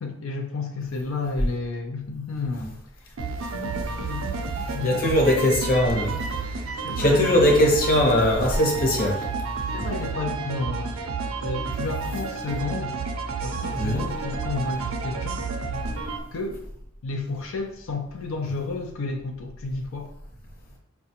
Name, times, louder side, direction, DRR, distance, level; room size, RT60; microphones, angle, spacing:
voice 1, 0.0-5.6 6.8-7.6 9.7-11.0 11.4-13.0 13.4-15.5 16.3-16.6 17.0-20.1, left 3 dB, 90° left, 0.5 m, -32 dB
sound 1, 3.2-16.2, right 4 dB, 90° right, 0.5 m, -30 dB
voice 2, 4.8-6.1 7.0-9.2 13.8-14.1, left 1 dB, 45° left, 0.8 m, -20 dB
4.8 x 2.3 x 2.7 m
head